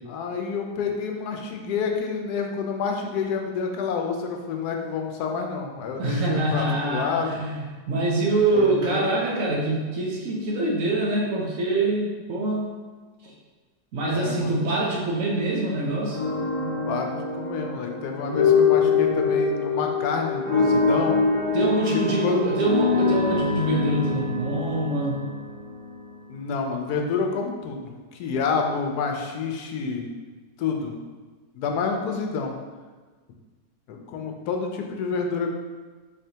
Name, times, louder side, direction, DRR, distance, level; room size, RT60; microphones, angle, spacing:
voice 1, 0.1-7.5 8.5-9.1 14.1-14.6 16.8-21.2 21.8-22.4 26.3-30.1 30.6-31.0 31.5-32.6 33.9-35.5, left 5 dB, 85° left, 3 dB, 1.1 m, -28 dB
voice 2, 6.0-12.7 13.2-13.3 13.9-16.2 21.5-25.2, right 2 dB, 65° right, -2 dB, 1.0 m, -25 dB
sound 1, 16.1-26.2, left 4 dB, 35° left, 1.4 m, -24 dB
4.1 x 3.3 x 2.8 m, 1.4 s
omnidirectional pair, 1.6 m